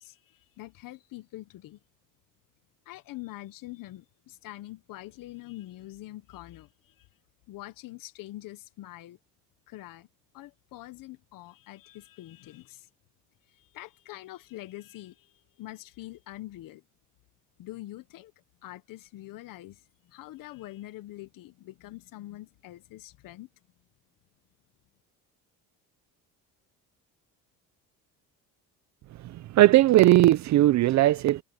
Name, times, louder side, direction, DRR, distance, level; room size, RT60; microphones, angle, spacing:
voice 1, 0.0-1.8 2.8-7.1 7.5-9.2 9.7-10.1 10.3-12.9 13.5-16.8 17.6-18.3 18.6-23.5, left 16 dB, 65° left, 1.2 m, -44 dB
voice 2, 29.2-31.4, right 15 dB, 50° right, 0.6 m, -19 dB
cardioid pair, 120°, 35 cm